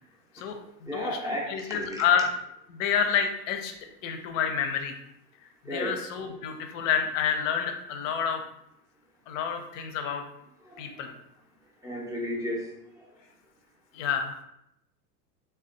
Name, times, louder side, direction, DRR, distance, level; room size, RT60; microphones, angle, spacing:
voice 1, 0.3-2.3 2.7-3.7 4.0-4.9 5.7-8.4 9.3-10.2 10.8-11.1 13.9-14.4, left 7 dB, 55° left, 5 dB, 0.6 m, -28 dB
voice 2, 0.9-2.0 5.7-6.3 10.7-11.1 11.8-12.7, equal, 5° right, -3 dB, 0.6 m, -34 dB
3.3 x 2.2 x 2.6 m, 0.80 s
hypercardioid pair, 85°, 48 cm